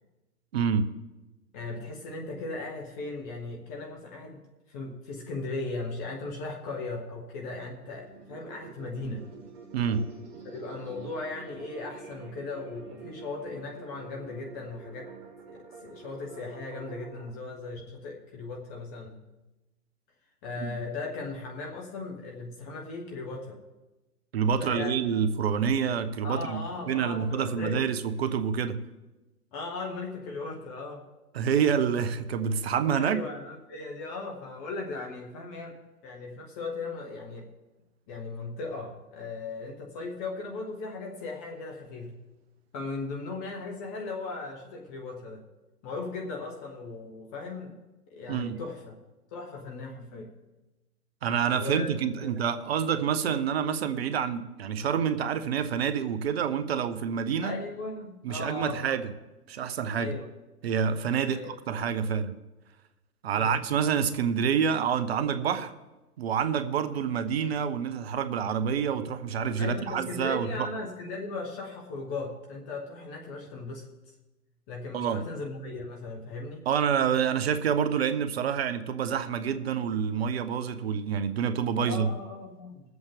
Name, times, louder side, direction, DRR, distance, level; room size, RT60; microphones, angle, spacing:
voice 1, 0.5-0.9 9.7-10.0 20.6-20.7 24.3-26.4 26.9-28.8 31.3-33.2 48.3-48.6 51.2-57.6 58.2-59.1 59.5-60.1 60.6-62.3 63.2-65.7 66.2-70.7 74.9-75.2 76.7-82.1, right 7 dB, 45° right, 0.8 m, -27 dB
voice 2, 1.5-9.2 10.4-15.1 15.5-19.2 20.4-23.6 24.6-25.0 26.2-27.9 29.5-31.0 32.9-35.8 36.0-37.5 38.1-42.2 42.7-45.4 45.8-47.7 48.1-49.0 49.3-50.3 51.5-51.9 52.2-52.3 57.4-59.0 60.0-60.3 61.3-61.6 63.4-63.6 69.6-73.9 74.7-76.6 81.7-82.8, left 3 dB, 10° left, 0.5 m, -37 dB
sound 1, 7.7-17.3, right 5 dB, 25° right, 1.4 m, -47 dB
21.5 x 7.9 x 3.6 m
figure-of-eight pair, 125°, 46 cm